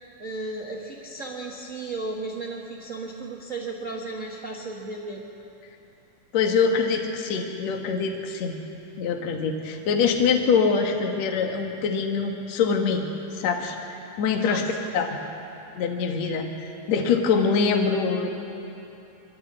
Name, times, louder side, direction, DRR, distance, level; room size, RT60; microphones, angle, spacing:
voice 1, 0.2-5.2 14.4-14.9, right 2 dB, 70° right, -2 dB, 0.7 m, -34 dB
voice 2, 6.3-8.6 9.0-13.0 13.3-13.8 14.2-14.6 14.9-15.2 15.8-18.3, left 5 dB, 60° left, 3 dB, 2.4 m, -24 dB
24.0 x 13.0 x 8.7 m, 2.9 s
omnidirectional pair, 3.8 m